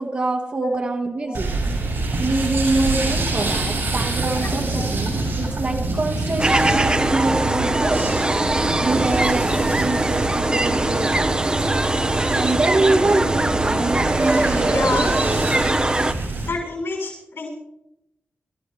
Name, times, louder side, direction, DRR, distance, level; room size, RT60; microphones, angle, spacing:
voice 1, 0.0-1.5 2.2-8.1 8.8-11.6 12.3-15.2, right 2 dB, 50° right, -3 dB, 1.7 m, -25 dB
sound 1, 1.3-16.5, right 2 dB, 80° right, 6.7 m, -26 dB
sound 2, 6.4-16.1, right 2 dB, 25° right, 1.0 m, -21 dB
voice 2, 14.7-15.1 16.4-17.5, left 3 dB, 80° left, -2 dB, 6.6 m, -28 dB
25.5 x 13.0 x 3.2 m, 0.85 s
cardioid pair, 65°, 4 cm